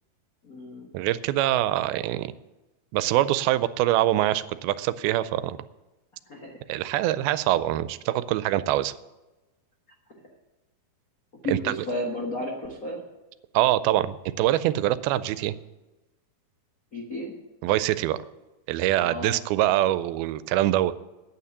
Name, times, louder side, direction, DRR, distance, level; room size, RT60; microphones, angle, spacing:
voice 1, 0.4-0.9 6.3-6.5 11.4-13.0 16.9-17.3 19.0-19.4, left 1 dB, 70° left, -1 dB, 0.8 m, -32 dB
voice 2, 0.9-2.3 2.9-5.6 6.7-8.9 11.5-11.7 13.5-15.6 17.6-18.2 18.7-20.9, right 14 dB, 90° right, 15 dB, 2.5 m, -24 dB
9.6 x 8.6 x 8.1 m, 1.1 s
omnidirectional pair, 4.3 m